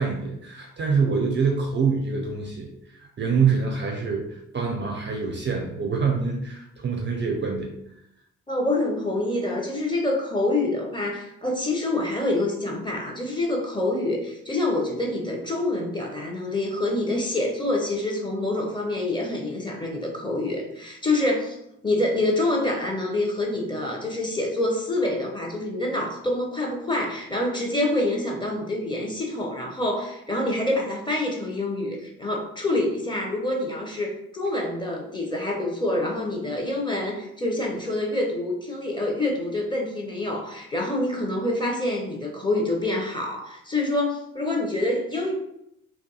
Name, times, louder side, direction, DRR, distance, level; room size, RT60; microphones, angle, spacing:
voice 1, 0.0-2.7 2.9-7.7, right 5 dB, 30° right, 1 dB, 0.5 m, -25 dB
voice 2, 8.5-21.6 21.8-45.3, left 2 dB, 15° left, 0 dB, 0.7 m, -26 dB
2.6 x 2.3 x 2.3 m, 0.77 s
hypercardioid pair, 40°, 37 cm